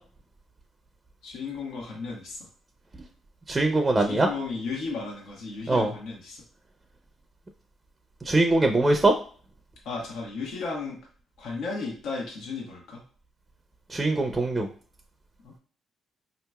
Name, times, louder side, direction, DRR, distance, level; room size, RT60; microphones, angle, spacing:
voice 1, 1.2-2.4 4.0-6.4 9.8-11.0 11.4-13.0 15.4-15.5, left 4 dB, 80° left, -1 dB, 1.0 m, -34 dB
voice 2, 3.5-4.3 5.7-5.9 8.3-9.1 13.9-14.7, right 2 dB, 20° right, 5 dB, 0.5 m, -22 dB
5.1 x 2.9 x 2.3 m, 0.42 s
cardioid pair, 90°, 0 cm